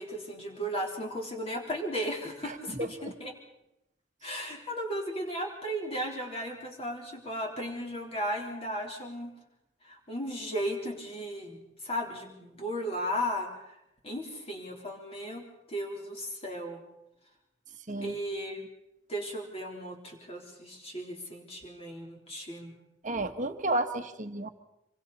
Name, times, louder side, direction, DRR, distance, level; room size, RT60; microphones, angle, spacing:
voice 1, 0.0-3.3 4.2-9.3 9.8-13.8 14.0-16.8 18.0-18.6 19.1-22.7, equal, 30° left, 1 dB, 3.8 m, -35 dB
voice 2, 2.5-3.1 17.9-18.2 23.0-24.5, right 2 dB, 40° right, 8 dB, 1.3 m, -32 dB
26.5 x 23.5 x 4.2 m, 0.87 s
head